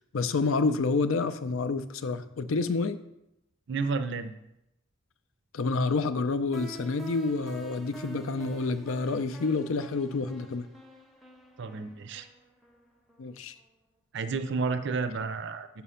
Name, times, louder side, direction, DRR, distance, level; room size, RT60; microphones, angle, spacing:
voice 1, 0.1-3.0 5.5-10.7 13.2-13.5, left 3 dB, 70° left, 12 dB, 0.5 m, -28 dB
voice 2, 3.7-4.3 11.6-12.3 14.1-15.7, right 4 dB, 55° right, 10 dB, 0.5 m, -31 dB
sound 1, 6.5-13.3, left 1 dB, ahead, 0.6 m, -48 dB
6.2 x 5.7 x 5.6 m, 0.85 s
head